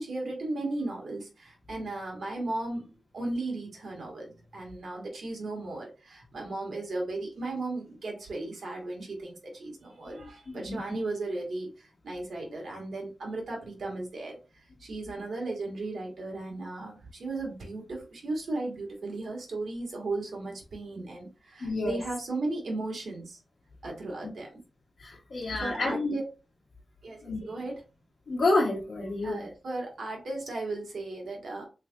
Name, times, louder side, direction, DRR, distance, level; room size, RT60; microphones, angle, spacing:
voice 1, 0.0-23.4 23.8-24.6 25.3-26.2 27.0-27.8 29.2-31.7, right 2 dB, 90° right, 0 dB, 1.3 m, -36 dB
voice 2, 10.2-10.8 21.6-22.0 25.0-26.2 27.2-27.4 28.3-29.5, left 2 dB, 75° left, -4 dB, 0.9 m, -29 dB
3.5 x 3.2 x 2.2 m, 0.30 s
wide cardioid pair, 115°, 0 cm